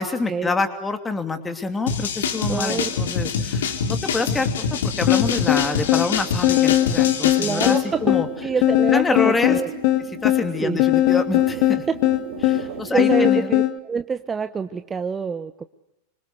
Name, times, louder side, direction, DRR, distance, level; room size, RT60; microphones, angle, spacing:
voice 1, 0.0-8.3 8.9-9.6 10.2-11.8 12.4-13.6, left 3 dB, 15° left, 7 dB, 2.9 m, -27 dB
sound 1, 1.9-7.8, left 6 dB, 60° left, 2.9 m, -25 dB
voice 2, 2.5-2.9 7.4-8.0 8.4-9.7 10.6-10.8 11.9-12.0 12.9-15.6, right 5 dB, 15° right, 11 dB, 1.0 m, -26 dB
sound 2, 5.1-13.8, left 15 dB, 45° left, 1.5 m, -20 dB
sound 3, 7.9-12.9, right 11 dB, 55° right, 3.1 m, -37 dB
26.5 x 26.0 x 6.6 m, 0.88 s
figure-of-eight pair, 90°, 0 cm